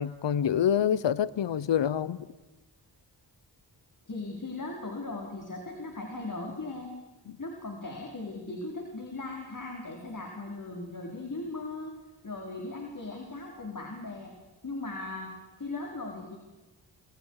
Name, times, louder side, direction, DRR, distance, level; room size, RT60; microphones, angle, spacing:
voice 1, 0.0-2.3, left 9 dB, 75° left, 19 dB, 0.9 m, -26 dB
voice 2, 4.1-6.9 7.4-11.9 12.2-14.3 14.6-16.4, left 2 dB, 45° left, 1 dB, 4.6 m, -38 dB
29.0 x 26.5 x 4.9 m, 1.2 s
cardioid pair, 70°, 43 cm